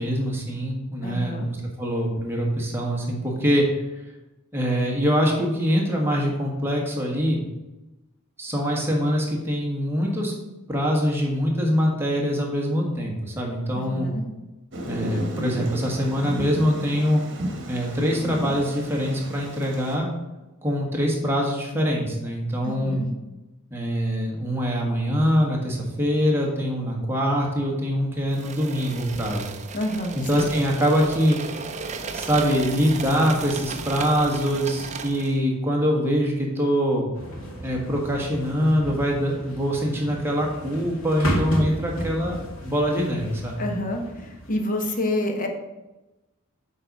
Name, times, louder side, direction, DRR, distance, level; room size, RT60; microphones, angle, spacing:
voice 1, 0.0-3.7 4.5-7.4 8.4-10.3 10.7-14.1 14.9-17.2 17.7-20.1 20.6-23.0 23.7-29.5 30.1-31.4 32.1-37.1 37.6-43.6, equal, 10° right, -1 dB, 1.4 m, -24 dB
voice 2, 1.0-1.5 13.7-14.2 22.6-23.1 29.7-30.5 43.6-45.5, left 1 dB, 40° left, 3 dB, 1.0 m, -28 dB
Thunder, 14.7-20.0, right 1 dB, 60° right, 1.2 m, -33 dB
sound 1, 28.3-35.4, right 4 dB, 35° right, 0.5 m, -35 dB
sound 2, 37.1-44.5, equal, 75° left, 2.1 m, -33 dB
7.8 x 3.9 x 5.4 m, 1.0 s
head